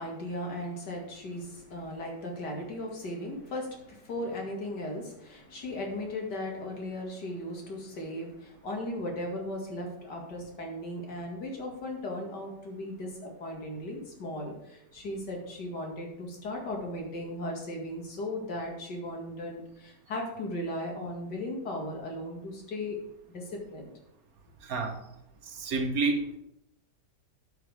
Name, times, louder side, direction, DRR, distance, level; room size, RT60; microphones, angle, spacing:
voice 1, 0.0-23.0 23.3-23.9, left 1 dB, 75° left, 0 dB, 2.6 m, -37 dB
voice 2, 24.6-25.0 25.4-26.4, right 3 dB, 60° right, 4 dB, 1.5 m, -29 dB
12.0 x 7.0 x 3.5 m, 0.83 s
omnidirectional pair, 1.8 m